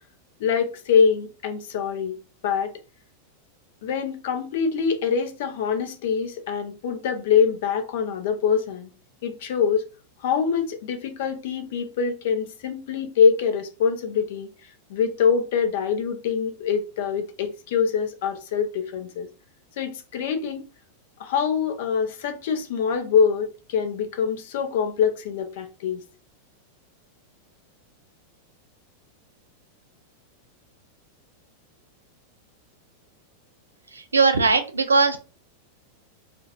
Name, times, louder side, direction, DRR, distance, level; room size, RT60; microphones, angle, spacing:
voice 1, 0.4-2.1 2.4-2.7 3.8-8.9 9.2-9.8 10.2-14.5 14.9-19.3 19.8-20.7 21.2-26.0, left 6 dB, 55° left, 0.5 m, -24 dB
voice 2, 33.9-35.2, right 4 dB, 75° right, 0.4 m, -19 dB
2.2 x 2.1 x 2.8 m
figure-of-eight pair, 90°, 0 cm